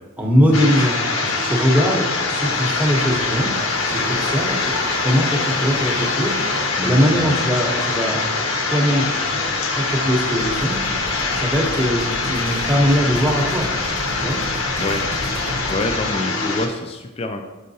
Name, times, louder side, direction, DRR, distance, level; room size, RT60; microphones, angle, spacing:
voice 1, 0.2-3.5 3.9-4.7 5.0-6.3 6.8-8.2 8.7-9.1 9.8-10.7 11.3-13.7 14.2-14.4, equal, 5° right, -1 dB, 0.7 m, -20 dB
sound 1, 0.5-16.7, left 3 dB, 70° left, 0.7 m, -23 dB
sound 2, 2.4-16.1, left 1 dB, 85° left, 1.2 m, -37 dB
voice 2, 6.8-7.3 14.8-15.0 15.7-17.4, left 2 dB, 25° left, 4 dB, 0.3 m, -26 dB
sound 3, 10.4-16.0, right 1 dB, 75° right, 0.7 m, -33 dB
6.4 x 5.5 x 2.7 m, 1.1 s
head